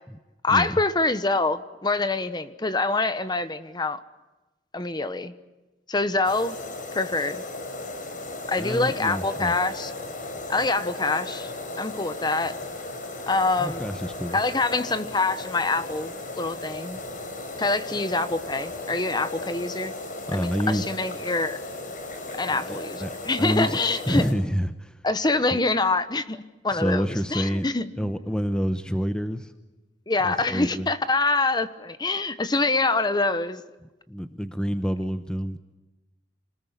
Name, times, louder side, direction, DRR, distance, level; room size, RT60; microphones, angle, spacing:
voice 1, 0.4-4.0 4.7-5.3 5.9-6.6 6.9-7.4 8.5-9.9 10.5-12.6 13.3-13.8 14.3-17.0 17.6-19.9 20.3-21.6 22.3-24.2 25.0-26.4 26.6-28.4 30.1-33.6, left 3 dB, 25° left, 12 dB, 1.1 m, -25 dB
sound 1, 6.2-24.3, left 2 dB, 50° left, 4.4 m, -36 dB
voice 2, 8.6-9.5 13.6-14.4 20.3-20.9 22.5-23.1 23.4-23.8 24.1-24.9 25.5-25.6 26.7-27.6 28.0-29.5 30.2-30.9 34.1-35.6, equal, 5° left, 9 dB, 0.9 m, -28 dB
27.0 x 20.0 x 8.3 m, 1.1 s
head